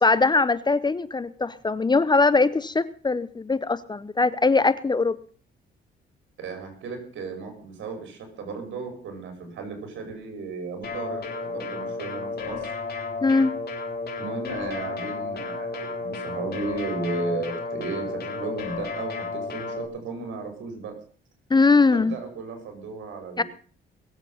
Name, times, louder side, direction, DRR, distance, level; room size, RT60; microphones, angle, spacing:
voice 1, 0.0-5.2 13.2-13.6 21.5-22.1 23.4-23.5, left 3 dB, 20° left, 17 dB, 0.7 m, -21 dB
voice 2, 6.4-12.7 14.2-21.0 21.9-23.4, right 3 dB, 70° right, 5 dB, 5.5 m, -34 dB
sound 1, 10.8-19.9, left 4 dB, 50° left, 3.7 m, -33 dB
20.5 x 8.1 x 5.7 m, 0.43 s
cardioid pair, 90°, 20 cm